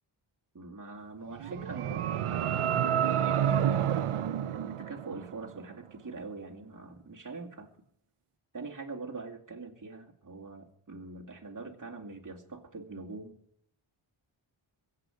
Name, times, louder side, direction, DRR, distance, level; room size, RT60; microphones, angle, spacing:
voice 1, 0.5-7.7 8.5-13.4, right 3 dB, 40° right, 1 dB, 2.3 m, -43 dB
sound 1, 1.3-5.5, right 9 dB, 85° right, 0.7 m, -29 dB
23.0 x 8.6 x 5.1 m, 0.72 s
wide cardioid pair, 70°, 50 cm